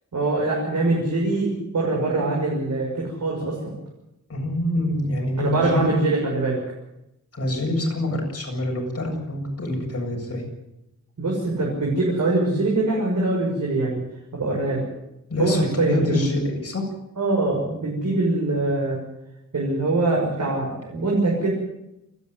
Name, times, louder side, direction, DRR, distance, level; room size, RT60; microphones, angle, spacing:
voice 1, 0.1-3.7 5.4-6.6 11.2-14.0 14.3-14.8 15.4-16.2 17.2-19.0 19.5-21.5, right 2 dB, 70° right, -3 dB, 6.5 m, -23 dB
voice 2, 4.3-6.0 7.3-10.4 15.3-16.8, left 1 dB, 50° left, 0 dB, 7.5 m, -25 dB
28.5 x 10.5 x 9.6 m, 0.88 s
wide cardioid pair, 120°, 31 cm